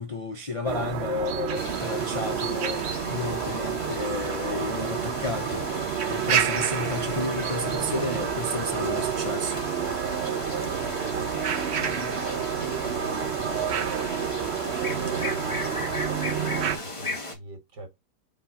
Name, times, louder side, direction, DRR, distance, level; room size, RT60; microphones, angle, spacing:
voice 1, 0.0-2.8 3.1-9.6, left 3 dB, 40° left, 0.4 m, -32 dB
sound 1, 0.6-16.8, right 8 dB, 55° right, 0.8 m, -29 dB
sound 2, 1.5-17.3, left 2 dB, 20° left, 1.5 m, -36 dB
voice 2, 10.1-11.3 11.7-14.0 14.8-18.0, right 1 dB, 85° right, 2.5 m, -43 dB
5.5 x 3.6 x 4.9 m
omnidirectional pair, 1.8 m